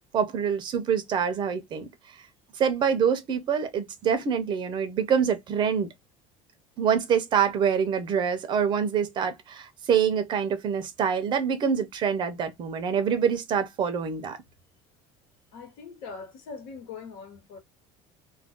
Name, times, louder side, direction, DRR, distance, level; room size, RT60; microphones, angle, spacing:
voice 1, 0.1-1.9 2.6-5.9 6.8-14.4, right 7 dB, 30° right, 0.6 m, -25 dB
voice 2, 15.5-17.6, left 5 dB, 80° left, 1.2 m, -41 dB
2.4 x 2.2 x 3.5 m
cardioid pair, 165°, 15 cm